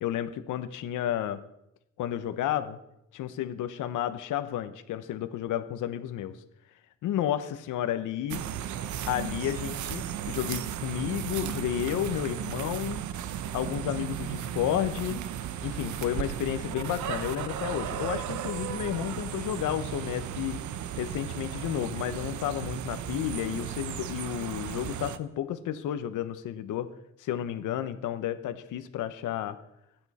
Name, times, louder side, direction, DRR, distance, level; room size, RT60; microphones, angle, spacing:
voice 1, 0.0-1.4 2.0-2.8 3.1-6.4 7.0-8.4 9.1-13.0 13.5-15.2 15.6-20.6 21.0-26.9 27.2-29.6, left 11 dB, 85° left, 10 dB, 1.1 m, -32 dB
sound 1, 8.3-25.2, right 10 dB, 75° right, 0.9 m, -35 dB
24.5 x 8.9 x 4.3 m, 0.82 s
cardioid pair, 90°, 30 cm